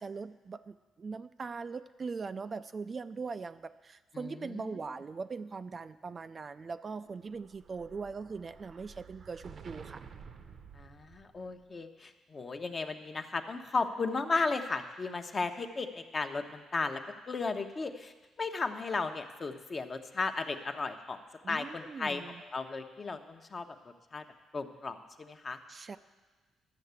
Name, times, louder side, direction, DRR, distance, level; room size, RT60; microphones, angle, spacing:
voice 1, 0.0-10.0 21.4-22.4 25.7-26.0, right 4 dB, 35° right, 11 dB, 0.4 m, -41 dB
voice 2, 4.1-4.8 10.7-21.2 21.5-23.7 24.1-24.2 24.5-25.6, left 3 dB, 35° left, 6 dB, 0.9 m, -35 dB
Explosion, 7.0-11.6, right 6 dB, 55° right, 0.8 m, -52 dB
12.0 x 6.6 x 8.2 m, 1.2 s
cardioid pair, 90°, 0 cm